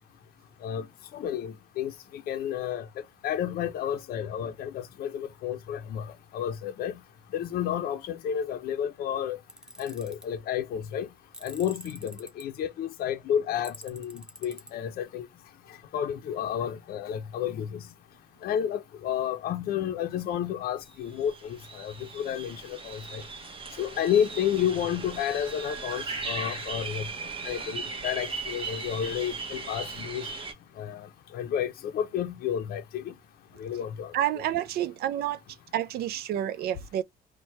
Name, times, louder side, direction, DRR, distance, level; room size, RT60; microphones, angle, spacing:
voice 1, 1.1-2.9 3.2-6.9 7.3-9.4 9.8-11.1 11.4-15.3 15.9-17.8 18.4-23.2 23.8-27.0 27.4-30.3 30.8-31.1 31.3-33.1 33.6-34.1, left 9 dB, 65° left, 0.5 m, -31 dB
Tools, 9.5-10.3 11.3-12.4 13.6-14.7, right 1 dB, 5° right, 0.6 m, -45 dB
sound 1, 20.9-21.0 21.2-30.5, right 4 dB, 30° right, 1.0 m, -38 dB
voice 2, 34.1-35.4 35.7-37.0, right 11 dB, 65° right, 0.4 m, -29 dB
4.4 x 2.2 x 4.2 m
cardioid pair, 110°, 17 cm